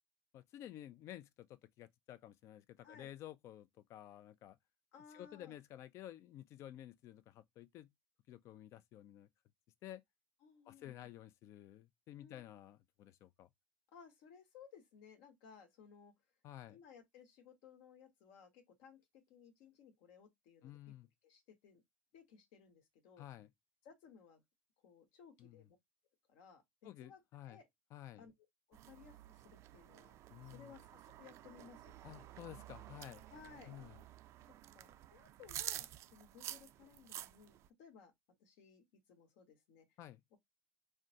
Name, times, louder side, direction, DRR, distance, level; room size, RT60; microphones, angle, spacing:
voice 1, 0.3-4.6 5.1-7.9 8.3-9.3 9.8-10.0 10.7-13.5 16.4-16.8 20.6-21.1 23.2-23.5 25.4-25.6 26.8-27.6 27.9-28.3 30.3-30.7 32.0-33.2 33.7-34.0 40.0-40.2, left 12 dB, 55° left, 0.4 m, -52 dB
voice 2, 4.9-5.5 10.4-11.1 12.2-12.4 13.9-16.1 16.7-20.8 21.2-21.8 22.1-23.2 23.8-24.4 24.8-25.8 26.3-26.6 27.0-27.2 27.5-27.7 28.2-28.3 28.7-30.1 30.4-31.9 33.3-33.7 34.7-38.1 38.4-39.9 40.3-40.4, left 7 dB, 75° left, 0.9 m, -60 dB
sound 1, 28.7-37.7, right 13 dB, 55° right, 0.3 m, -50 dB
3.5 x 2.2 x 2.7 m
hypercardioid pair, 80°, 6 cm